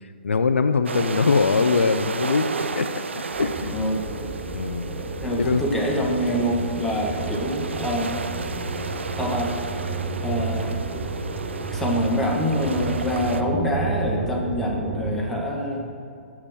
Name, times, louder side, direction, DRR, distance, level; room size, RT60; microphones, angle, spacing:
voice 1, 0.2-3.7 4.5-4.9 5.4-5.6, left 4 dB, 70° left, 9 dB, 0.4 m, -22 dB
sound 1, 0.9-13.4, right 4 dB, 65° right, 0.5 m, -33 dB
sound 2, 3.3-15.2, right 3 dB, 30° right, 1.1 m, -31 dB
voice 2, 3.7-4.0 5.2-8.2 9.2-9.5 10.2-10.7 11.7-15.9, equal, 5° left, -3 dB, 1.3 m, -25 dB
7.4 x 7.2 x 6.3 m, 2.5 s
figure-of-eight pair, 120°, 7 cm